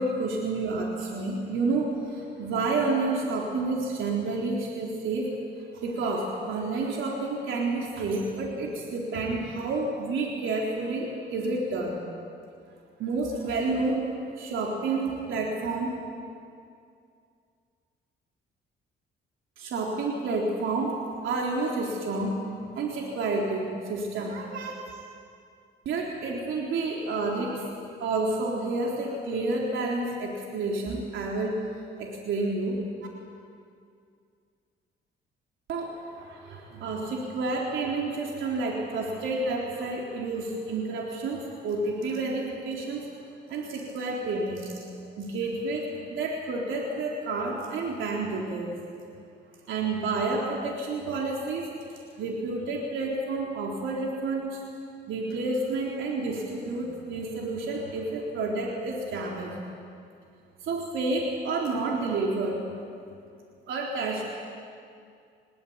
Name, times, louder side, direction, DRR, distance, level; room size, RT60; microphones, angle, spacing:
voice 1, 0.0-5.3 5.7-12.0 13.0-14.1 14.4-15.9 19.6-20.9 21.2-22.4 22.8-24.8 25.9-27.7 28.0-31.6 32.0-32.8 35.7-43.1 43.5-48.8 49.7-51.7 52.2-54.6 55.1-59.5 60.6-62.7 63.7-64.2, right 3 dB, 75° right, -2 dB, 3.8 m, -30 dB
23.0 x 22.0 x 8.8 m, 2.4 s
cardioid pair, 90°, 20 cm